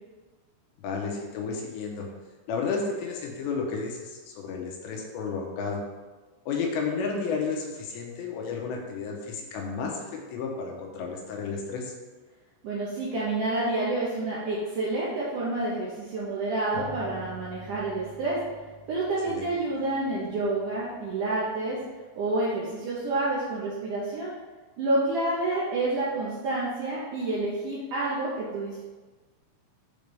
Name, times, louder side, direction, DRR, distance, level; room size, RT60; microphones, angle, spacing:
voice 1, 0.8-2.1 2.5-5.8 6.5-11.9 19.3-19.5, left 5 dB, 85° left, 1 dB, 3.2 m, -32 dB
voice 2, 12.6-18.4 18.9-21.8 22.1-24.3 24.8-28.8, right 2 dB, 75° right, -7 dB, 1.9 m, -29 dB
sound 1, 16.7-21.9, left 2 dB, 50° left, 0.4 m, -47 dB
7.6 x 3.3 x 5.3 m, 1.3 s
omnidirectional pair, 4.9 m